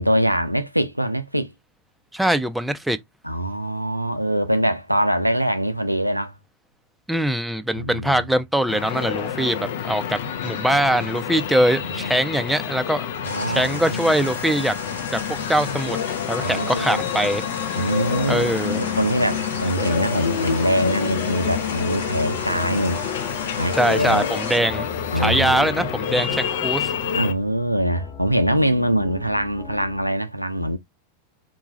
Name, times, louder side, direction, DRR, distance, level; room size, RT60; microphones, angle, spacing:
voice 1, 0.0-1.5 3.2-6.4 7.7-8.2 11.9-12.2 13.2-14.1 16.4-17.0 17.7-23.0 23.6-24.3 25.1-25.7 27.1-30.8, right 1 dB, 90° right, 0.4 m, -23 dB
voice 2, 2.1-3.0 7.1-13.1 13.5-14.7 15.1-15.2 15.5-16.0 16.3-17.4 18.3-18.8 23.7-24.9 25.2-26.9, right 1 dB, 5° right, 0.4 m, -22 dB
sound 1, 8.7-27.3, left 8 dB, 55° left, 0.6 m, -28 dB
sound 2, 13.2-24.6, left 3 dB, 70° left, 1.1 m, -35 dB
sound 3, 18.1-30.1, left 5 dB, 25° left, 1.1 m, -38 dB
3.8 x 2.3 x 3.0 m
figure-of-eight pair, 90°, 0 cm